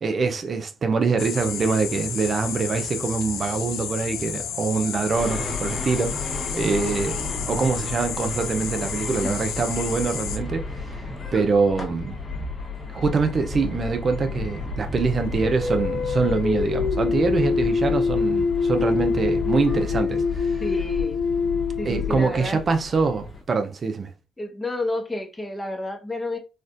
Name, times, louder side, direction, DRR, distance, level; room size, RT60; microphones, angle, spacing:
voice 1, 0.0-7.2 7.5-12.2 12.9-20.6 21.8-24.1, right 4 dB, 50° right, 0.5 m, -24 dB
sound 1, 1.2-10.4, left 8 dB, 80° left, 0.4 m, -32 dB
sound 2, 5.1-23.4, left 4 dB, 40° left, 1.2 m, -32 dB
sound 3, 15.4-22.8, left 5 dB, 60° left, 0.8 m, -25 dB
voice 2, 20.6-21.2 21.8-22.6 24.4-26.4, left 1 dB, 20° left, 1.1 m, -30 dB
4.2 x 2.4 x 2.5 m
supercardioid pair, 60°, 0 cm